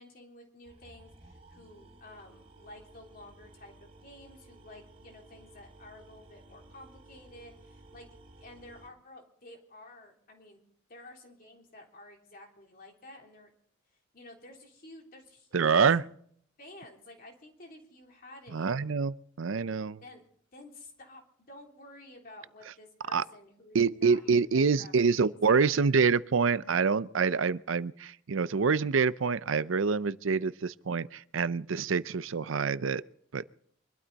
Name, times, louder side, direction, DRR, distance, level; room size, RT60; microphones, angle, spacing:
voice 1, 0.0-8.1 8.4-10.6 10.9-13.5 14.1-15.9 16.6-18.9 20.0-20.2 20.5-25.7, left 1 dB, 45° left, 3.4 m, -52 dB
sound 1, 0.6-8.9, right 2 dB, 35° right, 3.7 m, -55 dB
voice 2, 15.5-16.0 18.5-20.0 23.1-23.2 23.7-33.0 33.3-33.4, right 5 dB, 85° right, 0.6 m, -26 dB
24.0 x 12.5 x 4.1 m
head